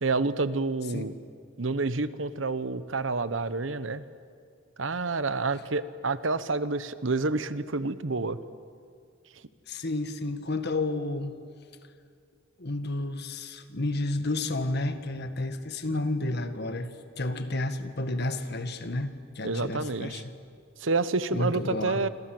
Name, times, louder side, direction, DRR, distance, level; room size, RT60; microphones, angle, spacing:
voice 1, 0.0-1.1 1.6-4.0 4.8-8.4 19.4-20.2 20.8-22.1, right 3 dB, 65° right, 14 dB, 1.0 m, -28 dB
voice 2, 9.7-11.4 12.6-16.9 17.2-20.2 21.3-22.0, left 2 dB, 55° left, 9 dB, 1.7 m, -31 dB
27.5 x 26.5 x 7.8 m, 2.2 s
head